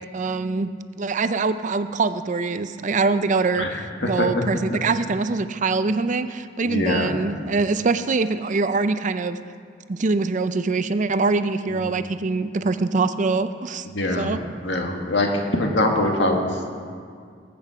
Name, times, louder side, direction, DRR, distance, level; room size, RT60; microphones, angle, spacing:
voice 1, 0.1-0.7 1.0-9.4 9.9-13.9 14.1-14.4, right 3 dB, 45° right, 11 dB, 0.5 m, -23 dB
voice 2, 6.6-7.1 11.8-11.9 13.9-14.3 14.6-16.5, left 1 dB, 75° left, 2 dB, 1.9 m, -23 dB
20.5 x 8.7 x 4.9 m, 2.2 s
head